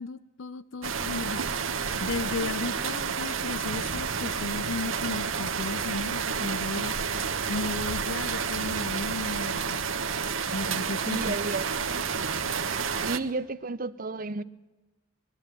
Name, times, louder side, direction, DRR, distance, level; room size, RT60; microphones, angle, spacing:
voice 1, 0.0-1.5 2.0-7.0 7.5-9.8 10.5-11.3, left 3 dB, 75° left, 0.7 m, -35 dB
sound 1, 0.8-13.2, right 6 dB, 85° right, 1.3 m, -30 dB
voice 2, 11.0-11.7 13.0-14.4, right 3 dB, 45° right, 0.8 m, -32 dB
22.0 x 13.0 x 9.1 m
head